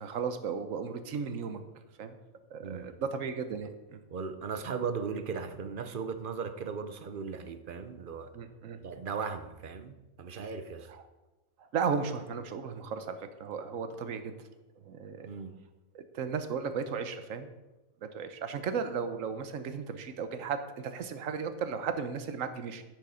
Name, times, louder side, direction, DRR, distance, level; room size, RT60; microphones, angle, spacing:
voice 1, 0.0-1.6 2.0-2.2 2.5-4.0 8.3-8.8 10.9-11.0 11.7-14.3 14.8-15.3 15.9-17.5 18.0-22.8, right 6 dB, 70° right, 9 dB, 1.2 m, -35 dB
voice 2, 2.6-3.0 4.1-8.3 8.8-10.9 15.2-15.6, right 5 dB, 50° right, 9 dB, 0.7 m, -37 dB
10.0 x 6.6 x 5.0 m, 1.1 s
omnidirectional pair, 1.4 m